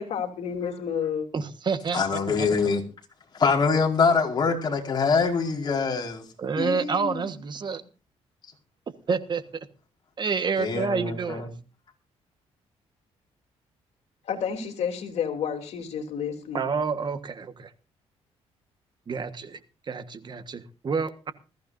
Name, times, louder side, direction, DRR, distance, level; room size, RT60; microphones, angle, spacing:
voice 1, 0.0-1.3 14.2-16.6, left 7 dB, 70° left, 3.1 m, -30 dB
voice 2, 1.3-2.5 6.4-7.8 9.1-9.7 10.2-11.5 16.5-17.7 19.1-19.6 19.9-21.3, right 5 dB, 40° right, 1.4 m, -29 dB
voice 3, 1.9-2.8 3.3-6.2 6.6-7.3 10.6-11.4, left 5 dB, 40° left, 4.7 m, -24 dB
20.5 x 15.0 x 2.6 m
cardioid pair, 110°, 11 cm